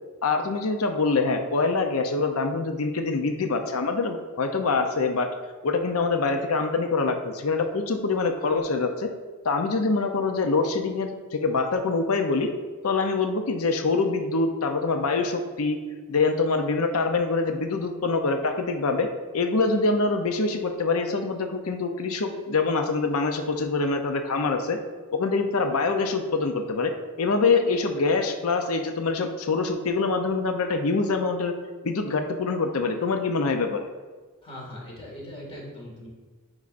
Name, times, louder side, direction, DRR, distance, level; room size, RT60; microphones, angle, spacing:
voice 1, 0.2-5.3 5.6-9.1 9.4-12.5 12.8-15.8 16.1-19.1 19.3-24.8 25.1-26.9 27.2-31.5 31.8-33.9, left 3 dB, 75° left, 5 dB, 0.6 m, -25 dB
voice 2, 34.4-36.1, left 1 dB, 25° left, -3 dB, 1.9 m, -40 dB
9.5 x 4.7 x 2.5 m, 1.4 s
head